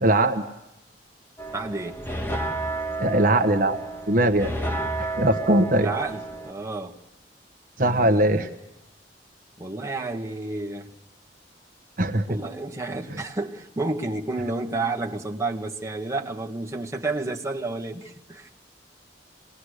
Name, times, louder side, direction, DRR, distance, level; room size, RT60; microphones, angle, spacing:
voice 1, 0.0-0.4 3.0-3.8 4.1-4.5 5.0-5.9 7.8-8.5 12.0-12.4, right 1 dB, 50° right, 6 dB, 1.3 m, -20 dB
sound 1, 1.4-6.5, right 2 dB, 15° left, 1.6 m, -31 dB
voice 2, 1.5-2.0 5.8-7.0 7.8-8.5 9.6-10.9 12.3-18.5, right 2 dB, 15° right, 0 dB, 1.8 m, -31 dB
27.0 x 20.5 x 6.6 m, 0.90 s
head